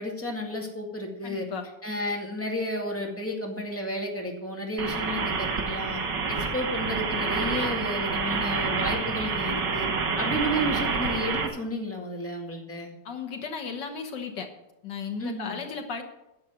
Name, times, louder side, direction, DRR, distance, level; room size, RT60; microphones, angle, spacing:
voice 1, 0.0-1.5 1.8-6.0 6.3-9.9 10.2-12.9 15.2-15.6, equal, 10° left, -1 dB, 2.0 m, -32 dB
voice 2, 1.2-1.7 13.1-14.5 14.8-16.0, left 5 dB, 80° left, 5 dB, 1.9 m, -35 dB
sound 1, 4.8-11.5, right 4 dB, 85° right, 2.2 m, -28 dB
10.5 x 7.2 x 7.8 m, 0.91 s
omnidirectional pair, 1.9 m